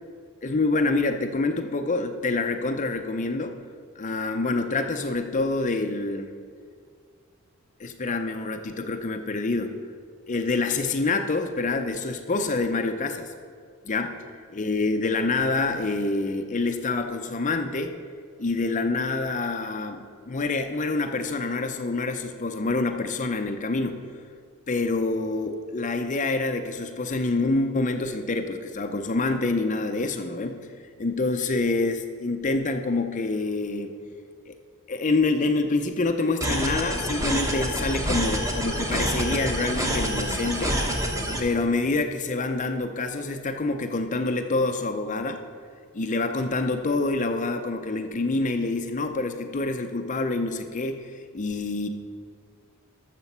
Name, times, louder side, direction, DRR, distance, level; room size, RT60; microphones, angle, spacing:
voice 1, 0.4-3.6 4.0-6.3 7.8-9.7 10.3-13.3 13.8-14.2 14.5-18.0 18.4-24.0 24.7-30.7 31.0-33.9 34.5-34.6 34.9-40.8 41.4-45.4 45.9-51.9, left 3 dB, 35° left, 6 dB, 0.6 m, -26 dB
sound 1, 36.4-41.4, equal, 15° right, 1.2 m, -27 dB
13.0 x 6.8 x 5.5 m, 2.1 s
head